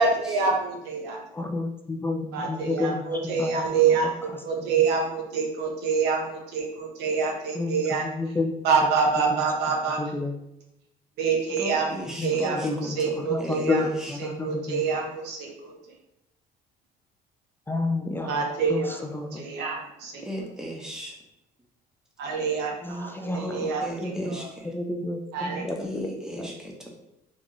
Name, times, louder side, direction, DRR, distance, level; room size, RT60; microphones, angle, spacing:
voice 1, 0.0-1.2 2.3-8.1 8.6-10.0 11.2-11.9 12.2-12.6 13.0-13.8 14.2-15.7 18.3-19.0 19.3-20.2 22.2-23.8 24.4-24.5 25.3-25.6, right 5 dB, 90° right, 1 dB, 0.9 m, -26 dB
voice 2, 1.3-3.7 4.6-4.7 7.6-7.7 8.0-8.6 9.3-9.4 10.0-10.3 12.2-12.3 12.6-12.9 13.3-13.8 14.1-14.8 17.7-18.4 18.7-19.4 22.8-23.4 24.0-24.3 24.7-26.1 26.4-26.5, left 3 dB, 15° left, 3 dB, 0.3 m, -30 dB
voice 3, 11.5-14.2 20.2-21.2 23.3-24.8 25.8-26.9, equal, 5° right, -1 dB, 0.8 m, -37 dB
3.0 x 2.5 x 3.7 m, 0.85 s
cardioid pair, 110°, 17 cm